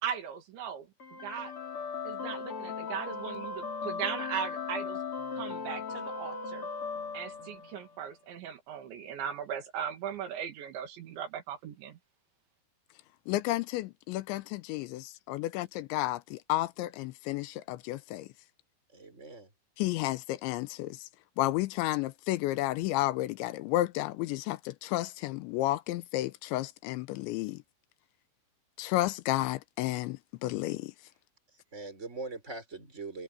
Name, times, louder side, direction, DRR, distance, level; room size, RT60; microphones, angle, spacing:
voice 1, 0.0-1.5 2.0-5.0 5.3-6.7 7.1-12.0, right 8 dB, 70° right, 4.4 m, -38 dB
sound 1, 1.0-8.0, left 5 dB, 35° left, 2.5 m, -38 dB
voice 2, 13.3-13.8 14.1-14.4 14.7-14.9 15.3-18.3 19.8-20.9 21.4-27.6 28.8-30.2 30.4-30.9, left 16 dB, 80° left, 2.9 m, -31 dB
voice 3, 18.9-19.5 31.7-33.2, right 3 dB, 15° right, 5.7 m, -41 dB
omnidirectional pair, 5.5 m